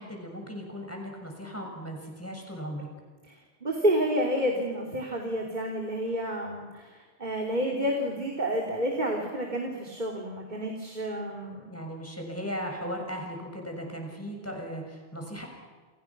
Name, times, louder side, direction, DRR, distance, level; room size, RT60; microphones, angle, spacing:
voice 1, 0.0-2.9 11.7-15.5, equal, 10° left, 1 dB, 6.7 m, -37 dB
voice 2, 3.3-11.7, equal, 40° right, 0 dB, 3.3 m, -30 dB
29.5 x 28.0 x 6.1 m, 1.5 s
omnidirectional pair, 1.2 m